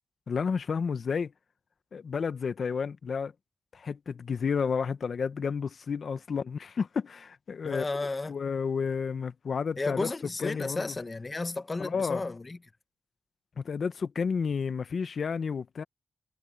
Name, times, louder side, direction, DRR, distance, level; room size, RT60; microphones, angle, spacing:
voice 1, 0.3-1.3 1.9-3.3 3.7-7.8 8.3-10.1 10.4-10.8 11.8-12.2 13.6-15.8, left 6 dB, 60° left, 1.1 m, -31 dB
voice 2, 7.6-8.4 9.8-12.6, left 3 dB, 30° left, 1.3 m, -33 dB
cardioid pair, 65°, 0 cm